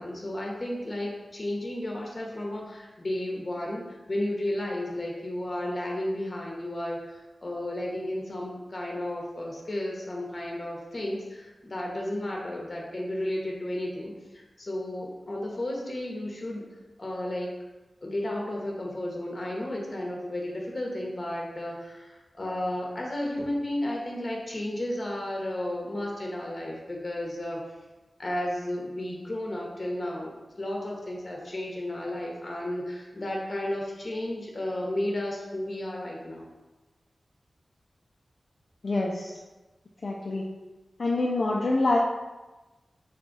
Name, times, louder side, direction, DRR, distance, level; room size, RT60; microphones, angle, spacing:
voice 1, 0.0-16.7 17.0-17.5 18.0-27.6 28.2-36.5, left 1 dB, 45° left, -1 dB, 0.9 m, -33 dB
voice 2, 38.8-39.4 40.0-40.4 41.0-42.0, left 2 dB, 60° left, -3 dB, 0.4 m, -26 dB
4.1 x 2.3 x 3.9 m, 1.1 s
cardioid pair, 40°, 0 cm